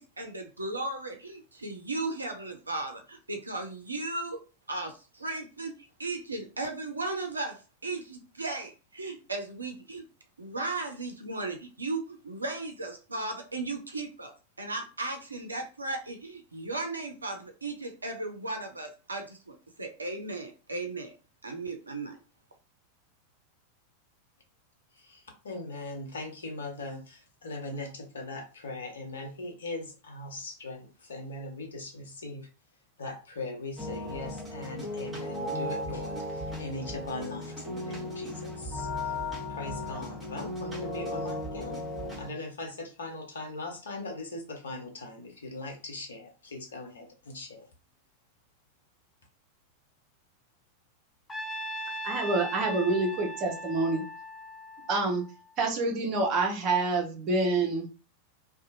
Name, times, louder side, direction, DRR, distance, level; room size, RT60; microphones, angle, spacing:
voice 1, 0.0-4.4 4.7-5.7 6.0-10.0 10.4-14.3 14.6-21.1 21.4-22.2, right 2 dB, 80° right, 4 dB, 0.5 m, -36 dB
voice 2, 25.0-32.5 33.0-39.2 39.5-41.9 42.1-47.7, left 2 dB, 65° left, 1 dB, 0.9 m, -40 dB
sound 1, 33.8-42.3, left 1 dB, 5° right, 1.2 m, -36 dB
Trumpet, 51.3-55.5, right 1 dB, 15° left, 0.4 m, -39 dB
voice 3, 52.0-54.0 54.9-55.2 55.6-57.9, right 3 dB, 35° right, 1 dB, 0.9 m, -27 dB
2.7 x 2.3 x 2.6 m, 0.33 s
figure-of-eight pair, 90°, 0 cm